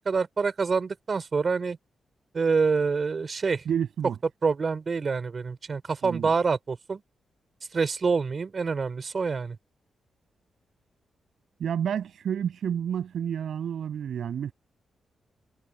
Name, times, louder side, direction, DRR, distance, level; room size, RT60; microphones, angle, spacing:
voice 1, 0.0-1.8 2.3-3.6 4.4-7.0 7.7-9.6, right 5 dB, 35° right, 4.9 m, -26 dB
voice 2, 3.7-4.2 6.0-6.3 11.6-14.5, right 8 dB, 70° right, 7.0 m, -30 dB
wide cardioid pair, 155°, 0 cm